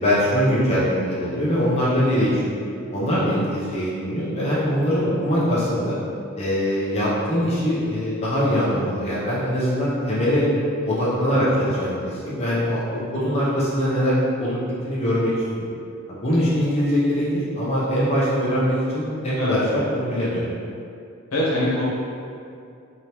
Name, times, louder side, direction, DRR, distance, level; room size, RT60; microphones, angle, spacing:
voice 1, 0.0-2.4 2.9-6.0 6.4-10.5 10.8-14.6 14.8-15.3 16.1-20.4, equal, 30° left, -8 dB, 0.6 m, -22 dB
voice 2, 21.3-21.8, left 1 dB, 90° left, -7 dB, 1.0 m, -23 dB
3.3 x 2.8 x 2.9 m, 2.5 s
head